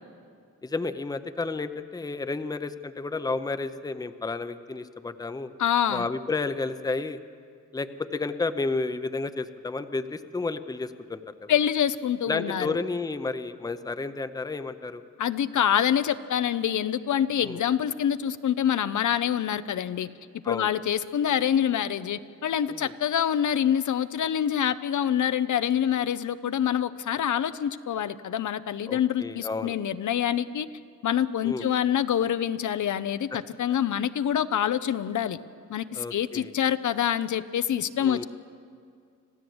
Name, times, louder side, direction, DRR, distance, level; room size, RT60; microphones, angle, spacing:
voice 1, 0.6-5.5 5.9-7.2 7.7-11.5 12.3-15.0 17.4-17.6 20.4-20.7 22.7-22.9 28.9-29.8 31.4-31.7 33.3-33.4 35.9-36.5 38.0-38.2, left 3 dB, 10° left, 11 dB, 0.6 m, -31 dB
voice 2, 5.6-6.1 11.5-12.7 15.2-20.1 20.5-30.7 31.0-35.4 35.7-38.2, left 9 dB, 70° left, 13 dB, 0.7 m, -26 dB
26.5 x 15.5 x 7.9 m, 2.3 s
wide cardioid pair, 160°, 31 cm